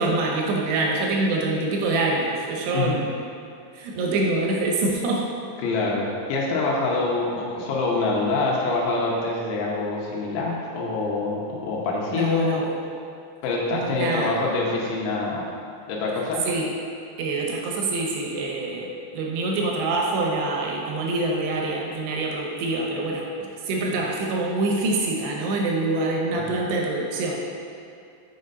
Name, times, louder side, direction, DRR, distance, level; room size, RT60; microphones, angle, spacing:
voice 1, 0.0-3.1 3.7-5.2 12.1-12.6 13.7-14.3 16.5-16.7 17.2-23.2 23.7-27.4, right 2 dB, 75° right, -1 dB, 2.7 m, -25 dB
voice 2, 5.6-12.7 13.4-15.4 15.9-16.4 26.3-26.4, left 3 dB, 85° left, -3 dB, 3.4 m, -25 dB
7.7 x 5.3 x 4.0 m, 2.5 s
omnidirectional pair, 5.4 m